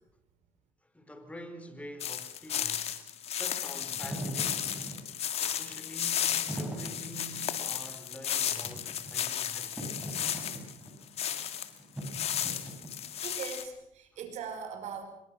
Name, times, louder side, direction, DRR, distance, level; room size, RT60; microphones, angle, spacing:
voice 1, 0.8-3.0 3.4-4.8 5.4-9.8 14.1-14.2, equal, 10° left, 4.2 m, -47 dB
sound 1, 2.0-11.7 12.0-13.6, left 9 dB, 55° left, 2.3 m, -34 dB
Wind / Fire, 3.8-13.3, right 1 dB, 10° right, 7.7 m, -42 dB
voice 2, 13.0-15.0, right 6 dB, 65° right, 5.3 m, -40 dB
24.0 x 21.5 x 6.2 m
supercardioid pair, 90°, 13 cm